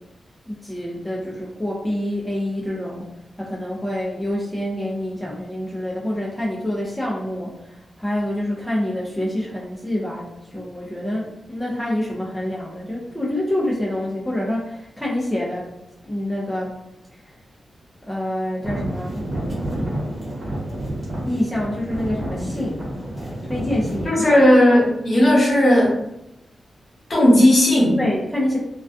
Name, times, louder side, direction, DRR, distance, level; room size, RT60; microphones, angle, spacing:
voice 1, 0.5-3.1 3.4-7.7 8.0-10.3 10.5-15.7 16.0-16.8 18.0-19.2 21.2-22.9 23.4-24.4 28.0-28.6, left 1 dB, ahead, -6 dB, 0.4 m, -26 dB
sound 1, 18.6-24.1, right 1 dB, 30° right, 0.9 m, -29 dB
voice 2, 24.0-26.0 27.1-28.0, left 1 dB, 50° left, -5 dB, 0.9 m, -15 dB
2.2 x 2.2 x 2.5 m, 0.85 s
wide cardioid pair, 150°, 0 cm